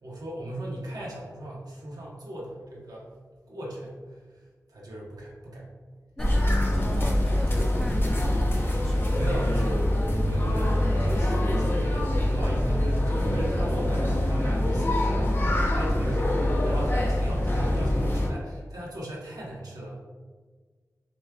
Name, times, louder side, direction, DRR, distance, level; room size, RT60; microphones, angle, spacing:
voice 1, 0.0-3.1 3.5-4.2 4.7-5.7 9.1-20.0, right 1 dB, 85° right, -4 dB, 1.3 m, -36 dB
sound 1, 6.2-18.3, left 1 dB, 35° left, 0.9 m, -24 dB
voice 2, 6.2-9.2, equal, 5° left, 4 dB, 0.4 m, -41 dB
6.9 x 3.2 x 2.4 m, 1.5 s
wide cardioid pair, 75°, 6 cm